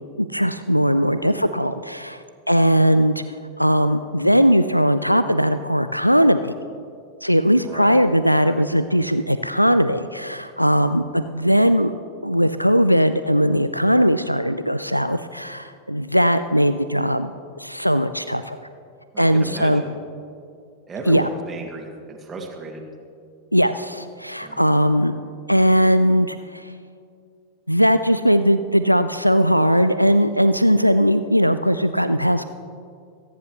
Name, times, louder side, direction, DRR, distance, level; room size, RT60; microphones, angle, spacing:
voice 1, 0.2-3.1 3.6-6.5 7.2-11.9 12.2-17.3 17.6-18.6 19.2-19.8 21.1-21.2 23.5-25.1 25.5-26.7 27.7-32.4, equal, 90° left, 12 dB, 0.3 m, -19 dB
voice 2, 7.6-8.0 8.3-8.6 19.1-20.0 20.9-22.8 24.4-24.6, right 2 dB, 20° right, 0 dB, 2.0 m, -34 dB
25.0 x 10.0 x 3.1 m, 2.3 s
figure-of-eight pair, 90°, 0 cm